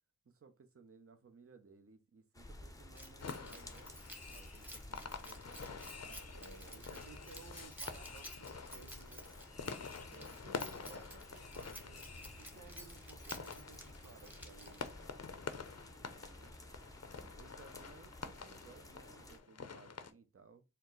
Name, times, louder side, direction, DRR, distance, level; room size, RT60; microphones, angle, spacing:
voice 1, 0.2-3.9 4.3-6.3 10.0-10.6 15.9-16.6 17.2-20.6, right 4 dB, 45° right, 0.7 m, -61 dB
sound 1, 2.3-19.4, left 1 dB, 10° left, 0.6 m, -54 dB
Keys jangling, 2.9-15.1, equal, 5° right, 1.1 m, -54 dB
sound 2, 3.2-20.1, left 5 dB, 50° left, 0.6 m, -48 dB
voice 2, 6.3-9.3 10.4-15.1, right 4 dB, 90° right, 0.6 m, -58 dB
4.5 x 2.1 x 3.8 m
cardioid pair, 45°, 33 cm